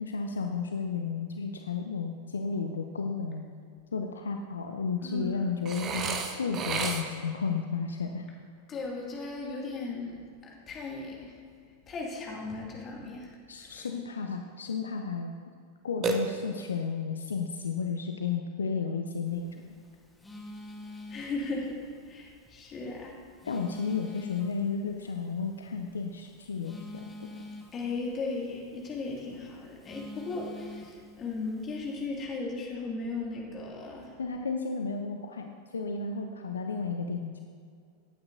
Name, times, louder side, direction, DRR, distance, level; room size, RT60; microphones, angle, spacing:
voice 1, 0.0-3.5 3.9-8.3 13.5-15.3 15.8-19.6 23.4-27.1 34.2-37.4, left 5 dB, 70° left, 4 dB, 0.5 m, -33 dB
voice 2, 5.0-5.5 8.7-11.3 11.9-13.3 13.6-13.9 21.1-21.8 22.1-23.1 27.7-34.1, left 3 dB, 25° left, -2 dB, 2.1 m, -36 dB
Burping eructation, 5.7-7.4 16.0-16.8, right 4 dB, 30° right, 0.9 m, -32 dB
Telephone, 19.3-32.1, left 1 dB, 10° left, 1.3 m, -48 dB
15.0 x 8.7 x 2.6 m, 2.2 s
figure-of-eight pair, 90°, 0 cm